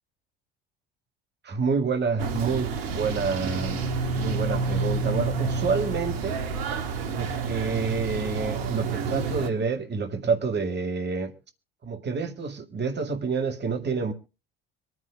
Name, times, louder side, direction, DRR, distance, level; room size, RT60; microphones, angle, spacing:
voice 1, 1.4-3.8 4.2-6.4 7.0-11.3 11.8-14.1, right 5 dB, 35° right, 2.0 m, -28 dB
sound 1, 2.2-9.5, right 4 dB, 75° right, 1.7 m, -29 dB
25.0 x 9.6 x 2.3 m
hypercardioid pair, 65°, 30 cm